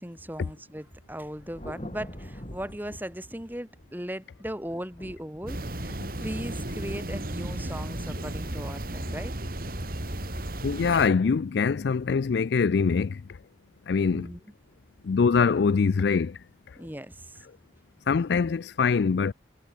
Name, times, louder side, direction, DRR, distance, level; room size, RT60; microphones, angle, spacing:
voice 1, 0.0-9.3 14.1-14.4 16.8-17.5, equal, 10° right, 4.4 m, -38 dB
Thunder, 1.0-4.1 4.6-9.9, equal, 35° left, 5.9 m, -46 dB
sound 1, 5.5-11.1, right 1 dB, 50° right, 2.6 m, -34 dB
voice 2, 10.6-13.2 13.9-14.3 15.0-16.4 18.1-19.3, left 5 dB, 65° left, 0.4 m, -23 dB
head